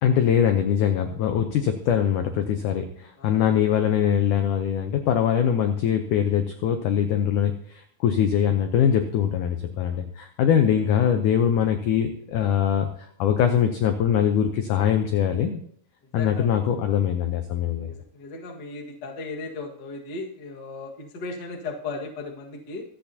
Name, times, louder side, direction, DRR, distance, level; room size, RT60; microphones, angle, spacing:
voice 1, 0.0-12.9 13.2-15.6 16.1-17.9, left 9 dB, 80° left, 6 dB, 1.8 m, -22 dB
voice 2, 16.1-16.5 17.8-22.8, left 3 dB, 45° left, 0 dB, 1.4 m, -36 dB
24.5 x 8.2 x 2.8 m, 0.66 s
omnidirectional pair, 4.5 m